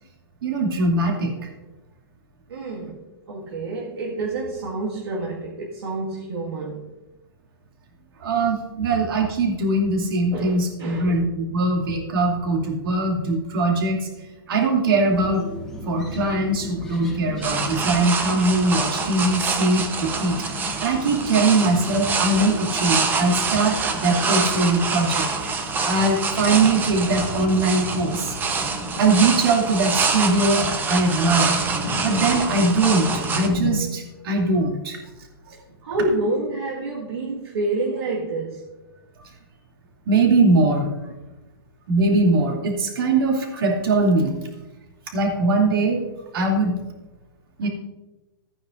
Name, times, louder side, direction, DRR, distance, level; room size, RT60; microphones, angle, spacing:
voice 1, 0.4-1.3 8.2-14.1 14.5-15.4 15.8-25.5 25.8-28.6 29.0-31.6 32.0-35.0 35.5-35.6 40.1-40.9 41.9-44.3 45.1-46.0 46.3-46.7 47.6-47.7, right 2 dB, 65° right, 0 dB, 2.7 m, -21 dB
voice 2, 2.5-3.0 3.3-6.9 10.3-11.2 11.6-11.7 35.8-38.6, right 2 dB, 85° right, -4 dB, 1.9 m, -28 dB
sound 1, 15.1-33.8, left 1 dB, 5° left, 1.7 m, -34 dB
sound 2, 17.4-33.5, right 4 dB, 15° right, 0.9 m, -26 dB
15.0 x 9.3 x 2.6 m, 1.1 s
hypercardioid pair, 150°, 13 cm